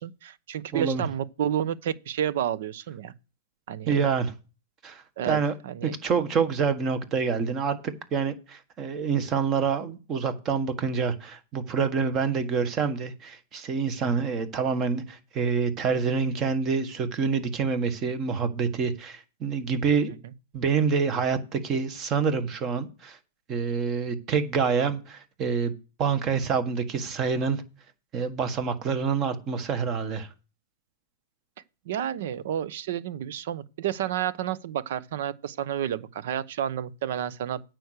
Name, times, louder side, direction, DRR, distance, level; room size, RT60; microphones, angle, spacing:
voice 1, 0.0-3.1 3.7-4.0 5.2-5.4 5.6-6.0 14.0-14.1 20.2-20.3 31.9-37.6, right 10 dB, 60° right, 0.9 m, -30 dB
voice 2, 0.7-1.0 3.9-4.3 4.8-5.5 5.8-20.1 20.5-23.2 23.5-25.7 26.0-27.6 28.1-30.3, right 5 dB, 25° right, 1.6 m, -27 dB
9.3 x 6.1 x 6.7 m
hypercardioid pair, 145°, 0 cm